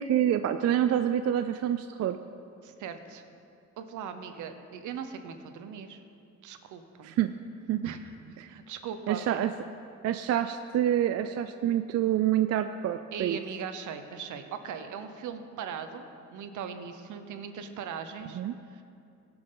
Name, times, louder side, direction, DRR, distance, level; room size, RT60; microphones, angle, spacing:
voice 1, 0.0-2.2 7.0-7.3 7.7-7.9 8.4-8.5 9.1-9.5 10.0-13.4 18.3-18.5, right 11 dB, 55° right, 9 dB, 0.4 m, -27 dB
voice 2, 2.6-3.2 3.8-6.0 6.4-7.1 7.8-8.1 8.4-9.5 13.1-18.4 18.7-18.8, right 7 dB, 75° right, 8 dB, 0.9 m, -39 dB
17.5 x 6.0 x 3.9 m, 2.5 s
cardioid pair, 90°, 30 cm